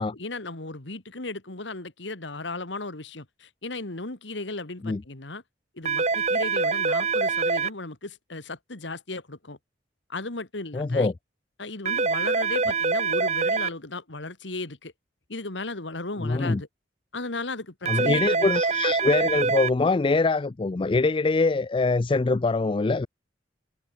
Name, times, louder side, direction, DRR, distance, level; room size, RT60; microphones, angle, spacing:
voice 1, 0.0-5.4 5.7-9.6 10.1-11.1 11.6-14.9 15.3-16.7 17.1-18.5, left 2 dB, 80° left, 2.3 m, -36 dB
sound 1, 5.9-7.7 11.9-13.7 17.9-19.7, right 4 dB, 40° right, 2.0 m, -24 dB
voice 2, 10.7-11.1 16.2-16.6 17.8-23.1, left 3 dB, 30° left, 0.4 m, -23 dB
head